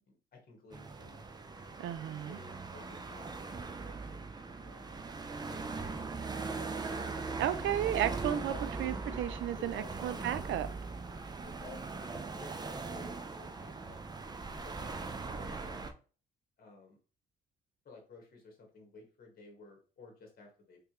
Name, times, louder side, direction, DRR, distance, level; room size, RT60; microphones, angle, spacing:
voice 1, 0.1-1.3 2.3-5.1 5.5-6.5 7.5-8.1 8.5-8.6 9.6-10.3 11.4-14.0 14.6-15.8 16.6-17.0 17.8-20.8, left 3 dB, 50° left, 1.5 m, -54 dB
sound 1, 0.7-15.9, right 4 dB, 20° right, 0.5 m, -40 dB
voice 2, 1.8-2.4 7.4-10.7, right 11 dB, 70° right, 0.5 m, -33 dB
3.4 x 3.3 x 3.0 m
cardioid pair, 90°, 20 cm